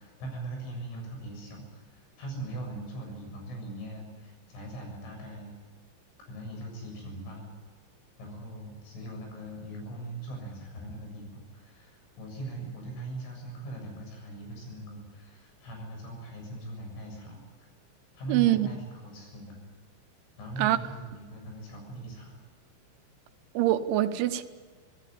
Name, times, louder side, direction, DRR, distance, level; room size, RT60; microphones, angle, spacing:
voice 1, 0.0-5.5 6.3-7.5 8.2-17.7 18.1-19.6 20.4-22.4, right 2 dB, 85° left, 2 dB, 9.8 m, -40 dB
voice 2, 18.3-18.7 20.6-20.8 23.6-24.4, right 14 dB, 80° right, 10 dB, 3.4 m, -24 dB
26.0 x 17.5 x 9.9 m, 1.5 s
omnidirectional pair, 5.5 m